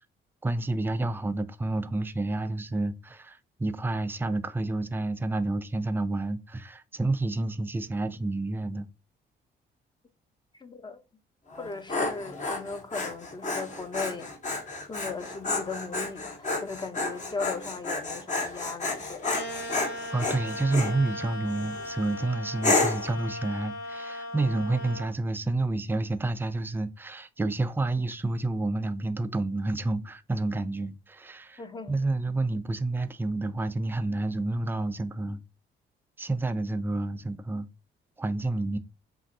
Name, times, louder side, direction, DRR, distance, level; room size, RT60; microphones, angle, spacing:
voice 1, 0.4-8.9 20.1-31.6 31.9-35.4 36.2-37.7 38.2-38.8, right 2 dB, 10° right, 0.4 m, -29 dB
voice 2, 10.5-11.0 11.6-14.3 14.9-19.4 31.6-32.0, left 4 dB, 20° left, 0.8 m, -38 dB
Dog, 11.5-21.0 21.5-21.9 22.6-23.1, left 3 dB, 35° left, 1.1 m, -31 dB
sound 1, 19.3-25.1, left 1 dB, 80° left, 1.6 m, -38 dB
5.7 x 2.5 x 2.7 m
cardioid pair, 90°, 20 cm